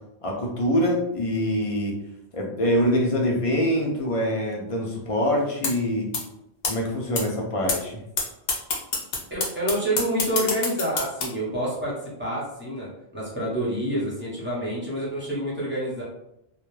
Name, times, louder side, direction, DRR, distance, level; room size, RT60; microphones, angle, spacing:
voice 1, 0.2-2.0 2.3-6.1 6.6-7.9, equal, 50° left, -1 dB, 0.4 m, -24 dB
sound 1, 5.6-5.7 6.1-6.2 6.6-6.7 7.2-7.3 7.7-7.8 8.2-8.3 8.5-11.2, left 4 dB, 65° left, 0.8 m, -24 dB
voice 2, 9.3-16.0, right 1 dB, 10° right, -7 dB, 0.8 m, -28 dB
2.3 x 2.1 x 3.0 m, 0.81 s
omnidirectional pair, 1.1 m